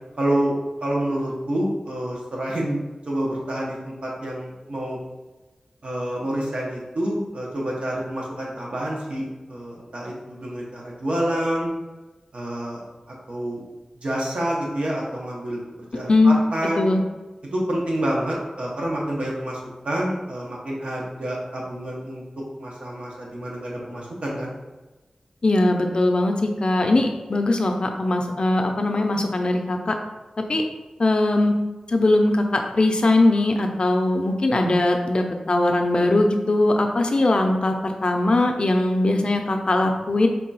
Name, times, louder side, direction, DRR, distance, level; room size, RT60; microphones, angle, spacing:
voice 1, 0.2-0.5 0.8-2.8 3.1-5.0 5.8-11.7 12.3-12.8 13.3-13.6 14.0-15.6 15.9-16.9 17.5-19.6 19.8-22.2 22.6-24.5, right 1 dB, 65° right, -3 dB, 0.9 m, -28 dB
voice 2, 16.1-16.4 16.8-17.0 25.4-29.9 30.5-30.6 31.0-31.5 31.9-40.3, left 2 dB, 50° left, 3 dB, 0.4 m, -20 dB
3.6 x 2.3 x 4.0 m, 1.2 s
wide cardioid pair, 90°, 2 cm